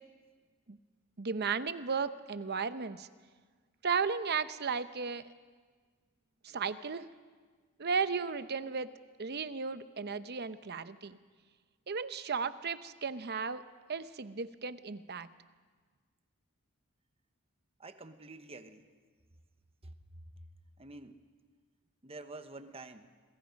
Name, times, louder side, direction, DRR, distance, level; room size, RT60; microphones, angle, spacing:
voice 1, 1.2-3.1 3.8-5.2 6.4-7.1 7.8-8.9 9.2-11.2 11.9-13.6 13.9-15.3, right 5 dB, 50° right, 12 dB, 0.8 m, -35 dB
voice 2, 17.8-18.9 19.8-20.2 20.8-21.2 22.0-23.1, right 2 dB, 25° right, 9 dB, 1.0 m, -48 dB
27.0 x 22.0 x 5.2 m, 1.5 s
head